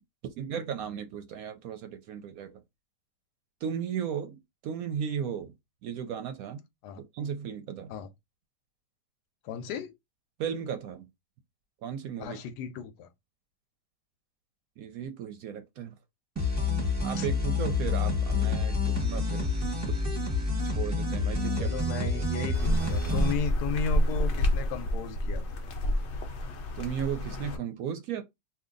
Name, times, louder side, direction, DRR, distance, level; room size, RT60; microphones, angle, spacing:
voice 1, 0.4-2.6 3.6-5.5 5.8-6.6 7.0-7.9 10.4-11.0 11.8-12.4 14.8-15.9 17.0-19.5 20.7-21.7 26.8-28.2, right 8 dB, 70° right, 0.9 m, -35 dB
voice 2, 9.4-9.9 12.2-13.1 17.2-17.3 21.6-25.4, left 6 dB, 80° left, 1.1 m, -35 dB
sound 1, 16.4-23.3, left 3 dB, 15° right, 0.8 m, -28 dB
sound 2, 22.5-27.6, equal, 65° left, 0.7 m, -29 dB
2.8 x 2.4 x 3.7 m
omnidirectional pair, 1.8 m